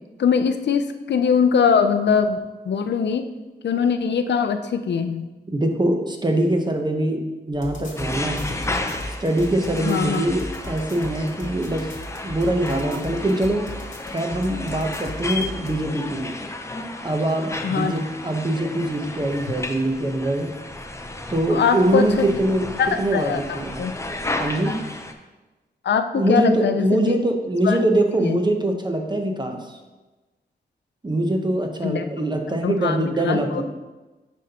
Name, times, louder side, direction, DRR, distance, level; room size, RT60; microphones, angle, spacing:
voice 1, 0.2-3.2 3.6-5.3 9.8-10.2 17.6-18.0 21.5-22.3 22.8-23.9 25.8-27.1 27.6-27.8 28.2-28.4 31.8-32.1 32.6-33.6, left 6 dB, 90° left, 8 dB, 0.5 m, -22 dB
voice 2, 5.5-8.4 9.1-11.9 12.2-13.7 14.1-16.4 17.0-20.5 21.3-23.9 24.4-24.8 26.1-29.8 31.0-33.6, right 1 dB, 25° right, 4 dB, 0.8 m, -23 dB
sound 1, 7.5-15.8, left 1 dB, 45° left, 1.4 m, -36 dB
sound 2, 8.0-25.1, left 2 dB, 15° left, 0.6 m, -33 dB
9.3 x 5.3 x 2.9 m, 1.2 s
wide cardioid pair, 100°, 18 cm